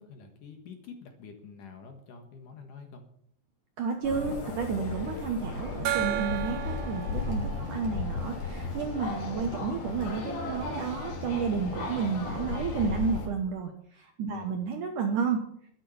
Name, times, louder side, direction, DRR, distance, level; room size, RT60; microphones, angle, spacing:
voice 1, 0.0-3.0 7.5-7.8 14.3-14.5, left 5 dB, 60° left, 5 dB, 2.5 m, -46 dB
voice 2, 3.8-15.4, right 5 dB, 70° right, 4 dB, 2.0 m, -31 dB
sound 1, 4.0-13.3, left 4 dB, 80° left, 5.3 m, -35 dB
Gong, 5.9-9.1, right 12 dB, 85° right, 3.2 m, -35 dB
12.5 x 10.5 x 7.1 m, 0.66 s
omnidirectional pair, 5.1 m